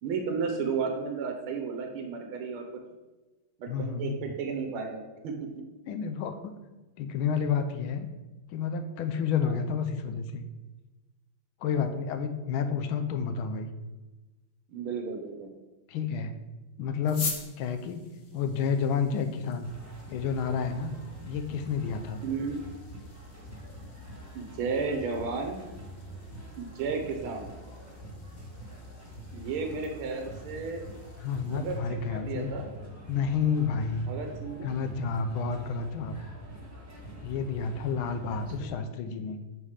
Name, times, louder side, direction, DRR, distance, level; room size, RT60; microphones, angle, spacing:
voice 1, 0.0-2.7 3.6-5.4 9.4-9.5 11.7-11.8 14.7-15.5 22.2-22.6 24.3-25.6 26.6-27.5 29.3-30.9 31.5-32.7 34.1-34.7 38.6-38.8, right 5 dB, 85° right, 4 dB, 1.7 m, -33 dB
voice 2, 3.7-4.2 5.9-6.5 7.0-8.1 8.5-10.4 11.6-13.7 15.9-16.3 16.8-18.1 18.3-19.7 20.1-20.9 21.3-22.2 31.2-32.5 33.1-34.1 34.6-36.1 37.2-39.4, left 6 dB, 80° left, 7 dB, 1.5 m, -30 dB
sound 1, 17.0-31.8, left 4 dB, 45° left, 0.9 m, -46 dB
sound 2, 19.6-38.7, equal, 10° right, 1.3 m, -45 dB
5.7 x 5.2 x 4.8 m, 1.1 s
omnidirectional pair, 2.2 m